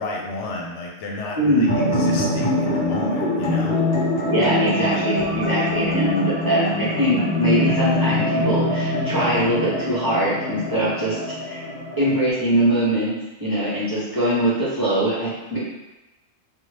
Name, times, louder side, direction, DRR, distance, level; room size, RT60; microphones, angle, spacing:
voice 1, 0.0-3.8, left 2 dB, 85° left, -1 dB, 0.9 m, -32 dB
voice 2, 1.4-1.8 4.2-11.2 11.5-11.6 12.0-15.6, right 1 dB, 20° right, -10 dB, 0.8 m, -22 dB
sound 1, 1.7-12.3, left 1 dB, 40° left, 0.7 m, -23 dB
2.7 x 2.3 x 3.2 m, 1.0 s
omnidirectional pair, 1.2 m